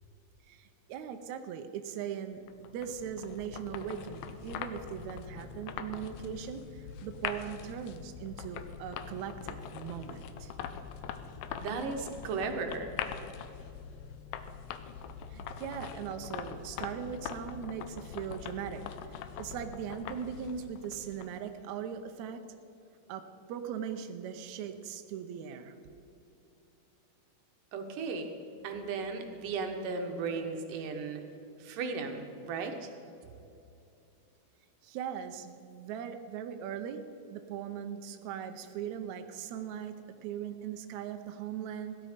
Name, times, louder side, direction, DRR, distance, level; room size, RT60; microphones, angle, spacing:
voice 1, 0.5-10.5 15.3-18.8 19.4-22.4 23.1-25.8 34.8-42.0, right 8 dB, 90° right, 7 dB, 1.6 m, -40 dB
sound 1, 2.5-21.5, left 8 dB, 80° left, 2.3 m, -43 dB
voice 2, 11.6-12.9 27.7-28.3 28.6-31.2 31.6-32.9, right 4 dB, 70° right, 5 dB, 2.6 m, -35 dB
16.5 x 12.0 x 5.1 m, 2.8 s
omnidirectional pair, 4.3 m